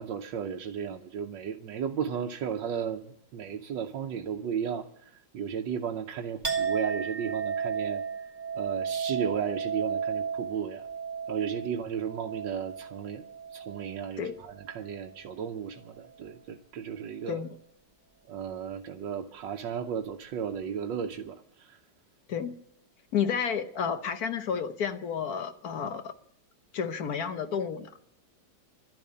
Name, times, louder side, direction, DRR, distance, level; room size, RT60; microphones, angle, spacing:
voice 1, 0.0-8.0 8.5-10.8 11.3-13.2 13.5-17.4 18.3-21.8, right 8 dB, 90° right, 1.5 m, -34 dB
Chink clink, 6.4-14.1 14.5-15.1, right 6 dB, 30° right, 1.3 m, -34 dB
voice 2, 23.1-26.1 26.7-27.9, left 7 dB, 60° left, 1.3 m, -31 dB
12.5 x 10.5 x 8.5 m
omnidirectional pair, 1.9 m